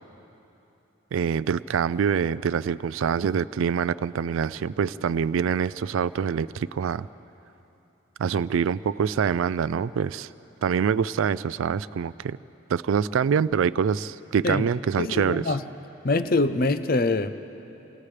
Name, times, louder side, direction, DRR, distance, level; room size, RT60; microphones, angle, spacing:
voice 1, 1.1-7.1 8.2-10.3 10.6-12.4 12.7-15.5, right 7 dB, 75° right, 17 dB, 0.3 m, -25 dB
voice 2, 15.0-15.6 16.0-17.5, left 2 dB, 45° left, 10 dB, 0.6 m, -24 dB
29.5 x 26.5 x 3.3 m, 3.0 s
head